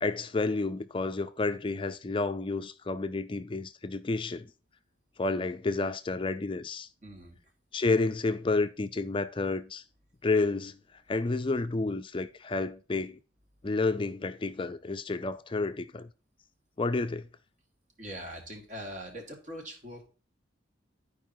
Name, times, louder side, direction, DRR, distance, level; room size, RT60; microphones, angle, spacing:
voice 1, 0.0-4.5 5.2-6.9 7.7-9.8 10.2-10.8 11.1-13.2 13.6-16.1 16.8-17.3, left 3 dB, 25° left, 0.4 m, -30 dB
voice 2, 7.0-7.4 18.0-20.0, equal, 40° right, 2.2 m, -42 dB
11.5 x 4.8 x 4.4 m
head